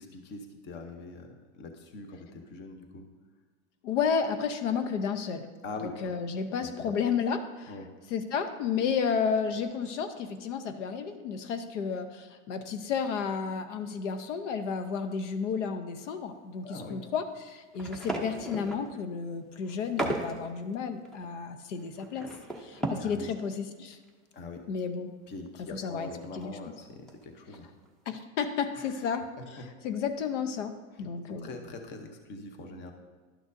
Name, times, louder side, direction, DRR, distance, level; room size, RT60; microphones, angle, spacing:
voice 1, 0.0-3.0 5.6-6.0 6.8-6.9 7.7-7.9 16.6-17.0 23.0-23.3 24.3-24.7 25.3-27.7 28.7-29.0 29.4-29.7 31.3-32.9, left 3 dB, 30° left, 5 dB, 0.9 m, -43 dB
voice 2, 3.8-5.5 5.8-7.7 8.1-22.3 22.6-24.0 24.7-25.1 25.6-26.1 26.3-26.6 28.1-29.2 29.5-29.6 29.8-30.7 31.0-31.5, left 6 dB, 80° left, 8 dB, 0.8 m, -32 dB
sound 1, 17.7-19.0 19.6-20.4 20.7-20.8 21.0-23.2 23.5-23.6 23.9-24.1 24.4-24.5 26.1-26.6 27.1-27.2 27.5-27.9, right 1 dB, ahead, 0.5 m, -36 dB
11.5 x 6.3 x 2.6 m, 1.4 s
supercardioid pair, 145°, 35 cm